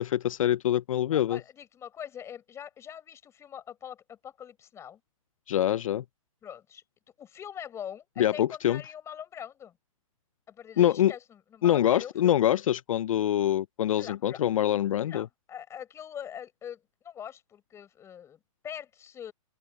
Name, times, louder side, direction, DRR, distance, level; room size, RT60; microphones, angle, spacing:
voice 1, 0.0-1.4 5.5-6.0 8.2-8.8 10.8-11.1 11.6-15.3, left 11 dB, 70° left, 0.5 m, -25 dB
voice 2, 1.1-5.0 6.4-6.8 7.2-9.8 10.5-12.3 14.0-14.4 15.1-19.3, left 9 dB, 15° left, 7.1 m, -43 dB
open air
hypercardioid pair, 155°, 18 cm